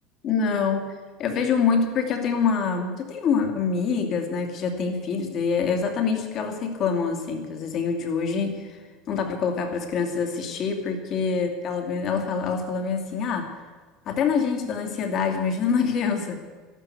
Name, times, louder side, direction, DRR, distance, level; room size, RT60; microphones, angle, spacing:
voice 1, 0.2-0.9 1.2-8.8 9.1-13.5 14.1-16.5, left 5 dB, 35° left, 4 dB, 2.5 m, -25 dB
13.5 x 12.0 x 8.3 m, 1.4 s
cardioid pair, 160°, 0 cm